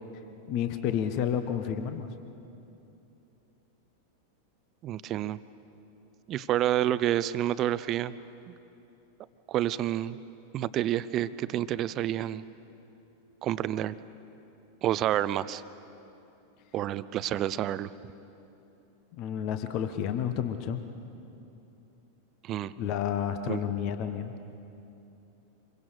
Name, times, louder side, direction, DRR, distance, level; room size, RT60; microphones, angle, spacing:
voice 1, 0.5-2.1 19.1-20.8 22.8-24.3, left 9 dB, 40° left, 8 dB, 1.3 m, -30 dB
voice 2, 4.8-5.4 6.3-8.1 8.5-8.6 9.5-10.2 10.5-12.4 13.4-13.9 14.8-15.6 16.7-17.9 22.4-22.7 23.5-23.6, right 12 dB, 35° right, 16 dB, 0.7 m, -29 dB
26.5 x 23.0 x 6.6 m, 2.9 s
figure-of-eight pair, 90°, 0 cm